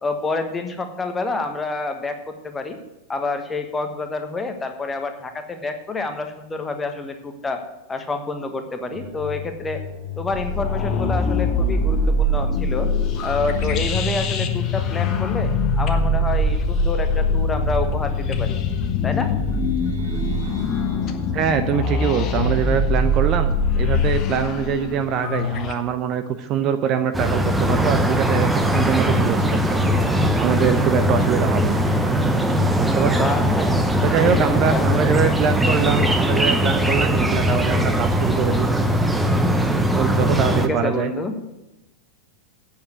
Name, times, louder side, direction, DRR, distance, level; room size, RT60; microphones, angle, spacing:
voice 1, 0.0-2.8 3.1-7.6 7.9-9.8 10.2-12.9 13.2-18.6 19.0-19.3 33.1-33.7 34.2-35.1 35.7-35.8 40.5-41.3, left 3 dB, 15° left, 6 dB, 1.3 m, -28 dB
sound 1, 8.9-24.4, left 9 dB, 80° right, 2.1 m, -35 dB
sound 2, 10.3-25.7, left 2 dB, 35° left, 1.1 m, -22 dB
voice 2, 21.3-29.9 30.4-31.8 32.8-33.3 34.0-38.7 39.9-41.1, right 7 dB, 35° right, 8 dB, 0.7 m, -23 dB
sound 3, 27.1-40.7, equal, 5° right, 0.9 m, -20 dB
8.7 x 7.2 x 8.0 m, 0.96 s
figure-of-eight pair, 90°, 0 cm